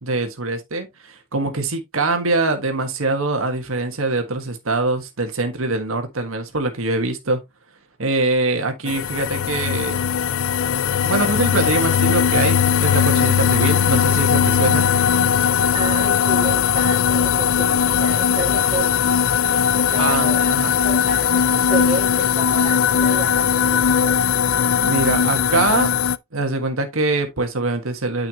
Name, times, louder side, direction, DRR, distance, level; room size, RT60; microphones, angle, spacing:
voice 1, 0.0-7.4 8.0-10.0 11.0-14.9 20.0-20.7 24.8-25.9 26.3-28.3, right 2 dB, 85° right, 1.6 m, -23 dB
sound 1, 8.9-26.2, left 8 dB, 70° left, 0.5 m, -19 dB
voice 2, 15.7-19.2 19.9-20.5 20.8-24.2, right 1 dB, 25° right, 2.6 m, -31 dB
9.2 x 5.7 x 2.9 m
head